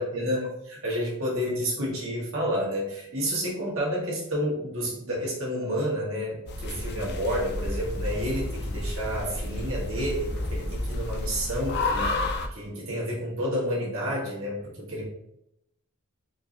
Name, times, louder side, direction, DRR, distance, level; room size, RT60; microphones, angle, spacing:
voice 1, 0.0-15.0, equal, 75° right, -4 dB, 1.3 m, -30 dB
sound 1, 6.5-12.5, left 2 dB, 50° left, 0.5 m, -31 dB
4.4 x 2.7 x 2.6 m, 0.81 s
head